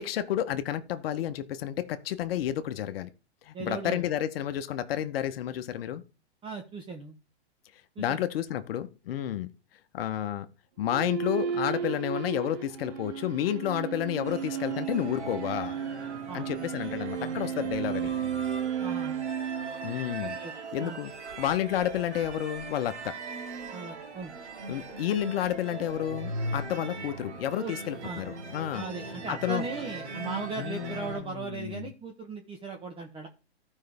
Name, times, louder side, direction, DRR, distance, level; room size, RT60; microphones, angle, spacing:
voice 1, 0.0-3.1 3.4-6.0 8.0-9.5 9.9-10.5 10.8-15.8 16.3-18.1 19.8-20.4 20.7-21.1 21.4-23.2 24.7-28.9 29.3-29.6 30.6-31.9, left 11 dB, 60° left, 0.9 m, -31 dB
voice 2, 3.5-4.0 6.4-7.1 7.9-8.2 16.3-16.4 18.8-19.2 20.2-20.5 20.8-21.0 23.7-24.3 27.6-28.2 28.7-33.3, right 4 dB, 15° right, 1.0 m, -38 dB
sound 1, 10.8-20.4, right 8 dB, 55° right, 1.8 m, -34 dB
sound 2, 14.2-31.2, right 3 dB, 80° right, 2.6 m, -39 dB
14.5 x 5.4 x 3.4 m
hypercardioid pair, 130°, 34 cm